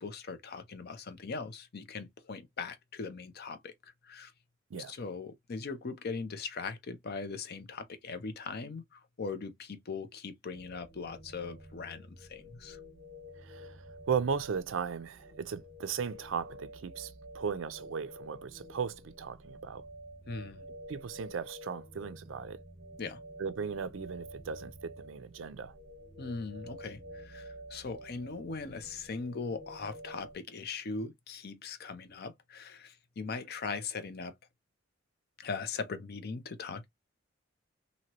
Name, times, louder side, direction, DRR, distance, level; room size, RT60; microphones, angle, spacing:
voice 1, 0.0-3.7 4.0-4.3 4.9-12.8 20.3-20.6 23.0-23.2 26.2-34.3 35.4-36.9, left 4 dB, 55° left, 0.6 m, -40 dB
sound 1, 10.5-30.4, equal, 20° right, 1.5 m, -50 dB
voice 2, 13.4-19.8 20.9-22.6 23.4-25.7, right 6 dB, 70° right, 0.4 m, -37 dB
2.9 x 2.7 x 2.8 m
head